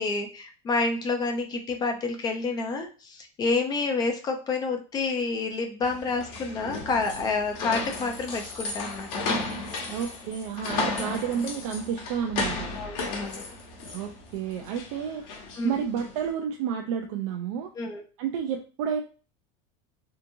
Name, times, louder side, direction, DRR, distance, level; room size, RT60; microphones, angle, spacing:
voice 1, 0.0-9.2 10.7-10.8 12.7-13.4 15.6-15.8 17.8-18.0, left 3 dB, 25° left, 4 dB, 0.4 m, -29 dB
sound 1, 5.8-16.2, left 3 dB, 55° left, 1.0 m, -34 dB
voice 2, 9.9-12.7 13.9-15.2 15.6-17.7 18.2-19.0, right 7 dB, 80° right, 3 dB, 0.4 m, -30 dB
2.8 x 2.5 x 2.6 m, 0.35 s
supercardioid pair, 155°, 17 cm